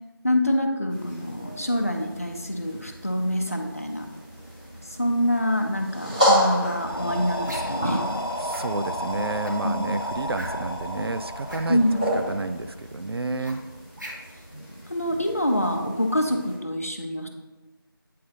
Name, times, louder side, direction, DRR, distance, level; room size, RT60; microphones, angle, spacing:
voice 1, 0.2-4.1 4.9-8.0 9.6-9.7 11.7-12.0 14.9-17.3, equal, 40° left, 3 dB, 0.6 m, -25 dB
sound 1, 0.9-16.6, equal, 20° right, 1.5 m, -32 dB
sound 2, 6.7-12.6, equal, 70° left, 1.0 m, -33 dB
sound 3, 7.4-7.8 8.5-8.7 9.4-9.7 10.3-10.8 11.4-11.7 13.4-14.4, right 1 dB, 55° right, 1.3 m, -39 dB
voice 2, 8.4-11.8 12.1-13.6, right 2 dB, 85° right, 10 dB, 0.4 m, -30 dB
8.4 x 4.2 x 2.8 m, 1.1 s
figure-of-eight pair, 175°, 12 cm